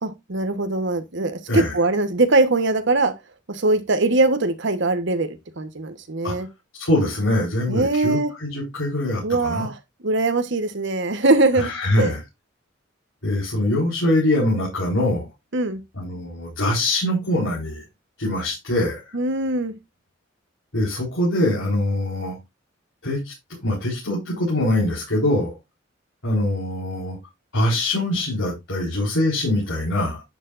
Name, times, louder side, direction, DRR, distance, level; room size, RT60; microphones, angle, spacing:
voice 1, 0.0-3.1 3.5-6.5 7.7-8.3 9.2-9.8 10.0-11.7 12.0-12.1 15.5-15.8 19.1-19.7, right 2 dB, 65° right, 1.2 m, -21 dB
voice 2, 6.8-9.7 11.6-12.2 13.2-15.3 15.9-17.8 18.2-19.0 20.7-22.4 23.0-23.3 23.6-25.5 26.2-27.2 27.5-30.2, left 1 dB, 85° left, 4.6 m, -23 dB
10.5 x 6.9 x 2.5 m
head